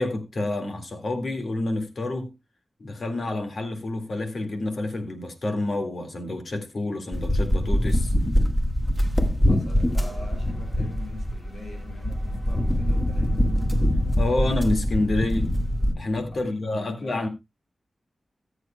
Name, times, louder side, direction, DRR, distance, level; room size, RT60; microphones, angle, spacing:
voice 1, 0.0-2.3 2.8-8.1 14.2-15.5 16.0-17.3, left 2 dB, 65° left, 1.9 m, -28 dB
sound 1, 7.1-15.9, equal, 15° left, 1.4 m, -23 dB
voice 2, 9.5-13.4 16.3-17.3, left 1 dB, 90° left, 4.3 m, -42 dB
sound 2, 9.9-16.4, left 1 dB, 45° left, 3.9 m, -43 dB
19.0 x 8.0 x 2.2 m
wide cardioid pair, 75°, 0 cm